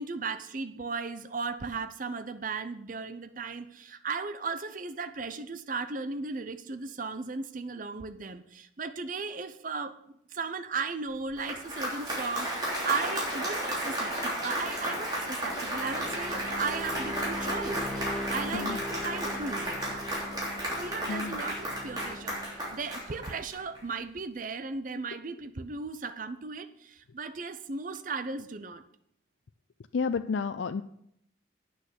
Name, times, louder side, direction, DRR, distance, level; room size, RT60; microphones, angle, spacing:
voice 1, 0.0-9.9 10.3-19.8 20.8-28.8, right 4 dB, 45° right, 10 dB, 0.6 m, -36 dB
Applause, 11.2-23.8, right 1 dB, 20° right, 3.3 m, -33 dB
sound 1, 15.3-24.1, left 1 dB, 5° left, 1.9 m, -41 dB
voice 2, 21.1-21.4 29.9-30.8, left 5 dB, 75° left, 10 dB, 0.4 m, -31 dB
9.2 x 6.4 x 8.3 m, 0.74 s
head